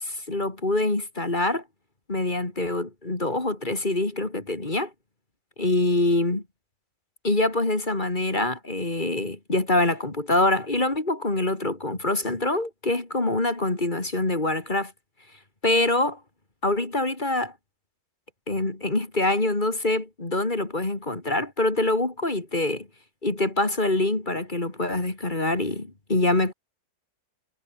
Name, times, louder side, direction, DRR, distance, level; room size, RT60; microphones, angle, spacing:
voice 1, 0.0-1.6 2.1-4.9 5.6-6.4 7.2-14.9 15.6-16.2 16.6-17.5 18.5-22.9 23.2-26.5, left 2 dB, 25° left, 2.7 m, -25 dB
omnidirectional pair, 2.0 m